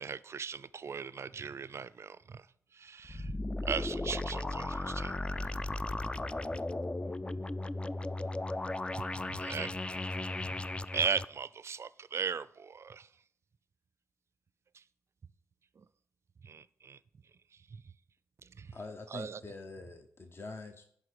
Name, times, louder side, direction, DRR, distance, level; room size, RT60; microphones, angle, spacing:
voice 1, 0.0-3.3 3.6-4.7 8.9-9.7 10.9-13.1 14.7-14.8 15.8-15.9 16.4-17.0 17.5-17.8 18.4-18.8 19.1-19.4, right 6 dB, 50° right, 0.5 m, -38 dB
sound 1, 3.0-11.3, left 2 dB, 15° left, 0.4 m, -36 dB
voice 2, 4.3-7.8, left 3 dB, 80° left, 2.7 m, -59 dB
voice 3, 18.7-20.9, left 3 dB, 40° left, 0.9 m, -45 dB
10.5 x 3.6 x 6.7 m
supercardioid pair, 45°, 6 cm